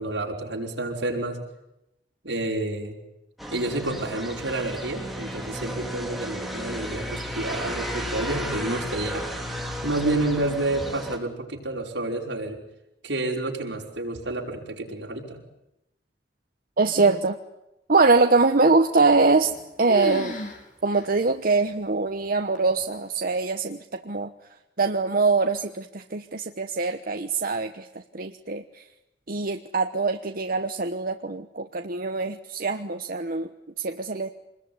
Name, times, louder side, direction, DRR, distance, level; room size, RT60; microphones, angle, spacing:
voice 1, 0.0-1.4 2.2-3.0 3.5-9.3 9.8-12.6 13.0-15.4, right 2 dB, 80° right, 0 dB, 5.4 m, -29 dB
sound 1, 3.4-11.2, equal, ahead, 3.6 m, -33 dB
voice 2, 16.8-17.4 17.9-19.5 19.8-20.4 20.8-24.3 24.8-27.8 28.1-28.6 29.3-33.5 33.8-34.3, right 3 dB, 55° right, 6 dB, 1.1 m, -23 dB
sound 2, 19.1-19.6 19.9-20.6 20.9-21.0 21.7-21.8 22.5-22.9, equal, 50° left, 5.0 m, -32 dB
26.0 x 21.0 x 9.7 m, 0.89 s
head